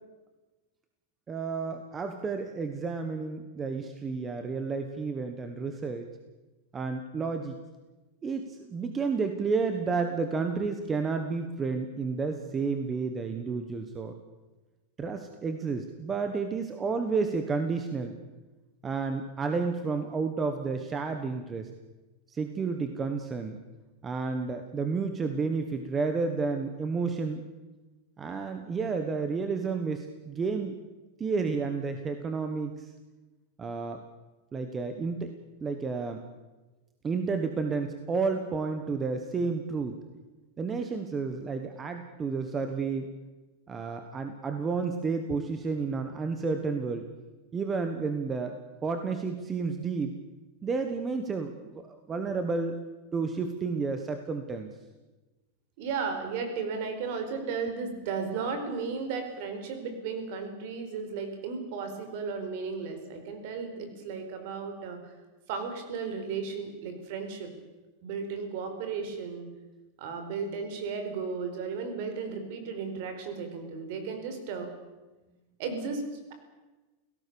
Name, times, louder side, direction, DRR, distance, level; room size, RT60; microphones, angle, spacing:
voice 1, 1.3-6.1 6.7-7.6 8.2-14.1 15.0-18.2 18.8-21.7 22.3-23.6 24.0-27.4 28.2-30.8 31.2-32.9 33.6-34.0 34.5-35.3 35.6-36.2 37.0-40.0 40.6-43.1 43.7-47.1 47.5-50.2 50.6-52.7 53.1-54.7, right 4 dB, 15° right, 6 dB, 1.3 m, -31 dB
voice 2, 55.8-65.2 65.5-67.5 68.0-69.5 70.0-74.7 75.6-76.0, right 5 dB, 50° right, 7 dB, 4.7 m, -34 dB
29.5 x 17.5 x 7.1 m, 1.2 s
supercardioid pair, 170°, 0 cm